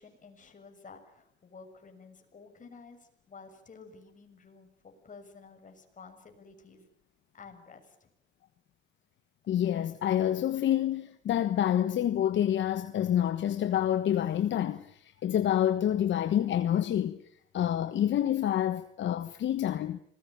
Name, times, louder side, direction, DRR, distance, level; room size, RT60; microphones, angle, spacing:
voice 1, 0.0-6.9 7.3-8.1, left 4 dB, 40° left, 6.7 m, -52 dB
voice 2, 9.5-17.2 17.5-20.0, left 10 dB, 70° left, 1.3 m, -28 dB
26.5 x 20.5 x 8.8 m
cardioid pair, 90°, 20 cm